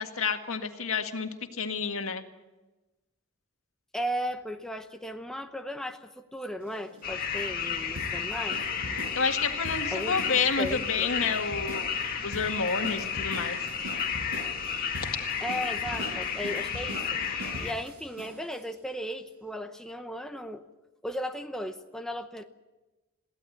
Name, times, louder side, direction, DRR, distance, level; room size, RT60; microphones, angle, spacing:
voice 1, 0.0-2.2 9.1-11.9 12.2-13.6, left 5 dB, 70° left, 5 dB, 1.9 m, -29 dB
voice 2, 3.9-8.6 9.9-11.1 15.4-17.2 17.6-20.6 21.0-22.4, equal, ahead, 5 dB, 0.8 m, -36 dB
sound 1, 6.6-18.6, right 1 dB, 90° right, 6.2 m, -42 dB
sound 2, 7.0-17.7, left 7 dB, 40° left, 2.0 m, -32 dB
22.5 x 16.5 x 8.1 m, 1.1 s
head